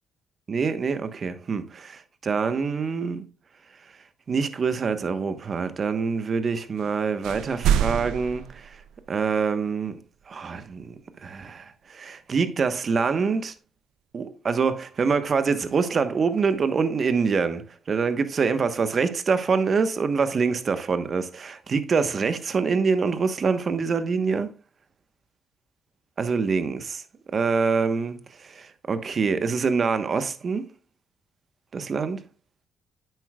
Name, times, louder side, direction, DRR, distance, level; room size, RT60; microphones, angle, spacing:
voice 1, 0.5-3.2 4.3-8.8 9.1-10.0 10.3-10.9 11.2-13.5 14.1-24.5 26.2-27.0 27.3-30.7 31.7-32.2, right 5 dB, 45° right, 1.0 m, -25 dB
sound 1, 6.8-6.9 7.2-9.3, right 9 dB, 90° right, 0.5 m, -26 dB
9.9 x 7.7 x 2.3 m
cardioid pair, 90°, 0 cm